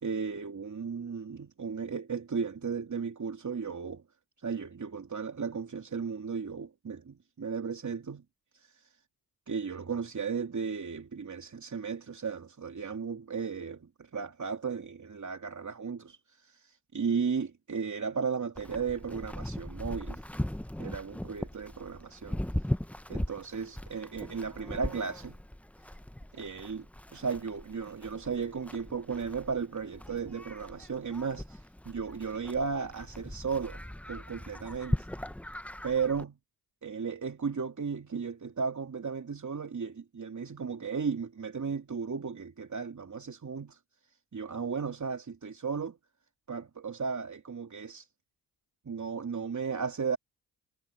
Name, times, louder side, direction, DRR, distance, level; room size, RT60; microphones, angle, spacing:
voice 1, 0.0-4.0 4.4-8.2 8.5-9.0 9.5-20.3 20.8-22.4 23.1-25.4 25.8-25.9 26.3-26.9 27.1-33.8 34.1-35.1 35.8-36.4 36.8-43.8 44.3-46.0 46.5-48.1 48.8-50.2, right 5 dB, 45° right, 2.9 m, -35 dB
Livestock farm animals working animals, 18.6-36.2, left 1 dB, 5° left, 1.0 m, -39 dB
supercardioid pair, 55°, 42 cm